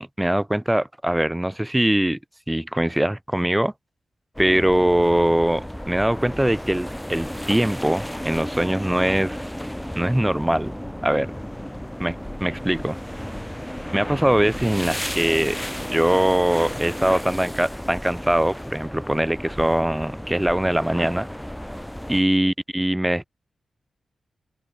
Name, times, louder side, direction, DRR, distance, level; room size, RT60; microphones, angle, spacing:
voice 1, 0.0-2.2 2.5-3.7 4.4-9.4 10.0-10.7 11.0-11.3 12.0-13.0 13.9-15.6 15.9-21.3 22.1-23.2, right 1 dB, 10° right, 0.6 m, -22 dB
sound 1, 4.3-22.2, equal, 5° left, 1.0 m, -33 dB
open air
supercardioid pair, 40°, 0 cm